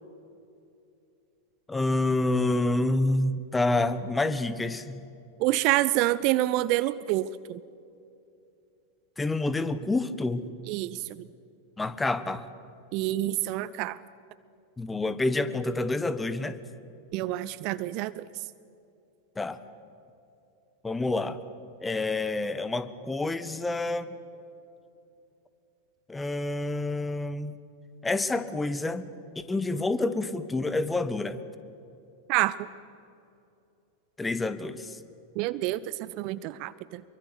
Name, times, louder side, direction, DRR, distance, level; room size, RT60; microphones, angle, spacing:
voice 1, 1.7-5.1 9.2-10.5 11.8-12.5 14.8-16.6 19.3-19.6 20.8-21.4 21.8-24.1 26.1-27.5 28.0-31.4 34.2-35.0, left 2 dB, 10° left, 13 dB, 1.3 m, -28 dB
voice 2, 5.4-7.6 10.7-11.3 12.9-14.0 17.1-18.4 32.3-32.7 35.4-37.0, right 16 dB, 45° right, 18 dB, 0.6 m, -27 dB
25.5 x 23.5 x 8.0 m, 2.7 s
figure-of-eight pair, 90°, 0 cm